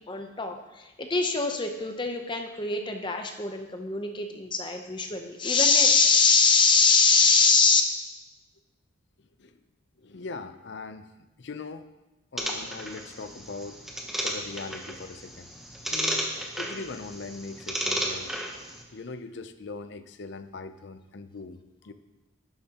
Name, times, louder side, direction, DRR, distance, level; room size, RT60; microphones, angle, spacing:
voice 1, 0.1-7.8, left 4 dB, 25° left, 5 dB, 0.7 m, -23 dB
voice 2, 10.0-11.1 11.4-11.9 12.3-13.8 14.2-15.5 15.9-16.3 16.6-18.6 18.9-21.9, left 3 dB, 60° left, 10 dB, 0.5 m, -40 dB
sound 1, 12.4-18.8, equal, ahead, 0.9 m, -33 dB
11.5 x 10.0 x 2.9 m, 1.1 s
head